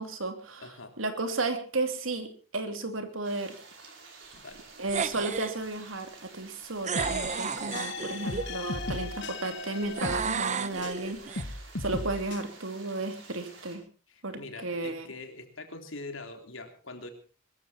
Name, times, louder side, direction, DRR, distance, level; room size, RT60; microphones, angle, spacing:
voice 1, 0.0-0.7 1.0-3.5 4.8-13.8 14.2-15.1, right 2 dB, 90° right, 6 dB, 3.1 m, -34 dB
voice 2, 0.6-0.9 4.3-4.7 14.1-17.1, left 3 dB, 80° left, 5 dB, 3.5 m, -43 dB
sound 1, 3.2-13.8, right 4 dB, 70° right, 5.6 m, -51 dB
sound 2, 4.9-5.6 6.8-8.5 10.0-11.4, right 6 dB, 35° right, 0.8 m, -32 dB
sound 3, 7.0-11.0 11.4-12.4, left 2 dB, 65° left, 1.5 m, -37 dB
22.0 x 14.0 x 4.3 m, 0.38 s
head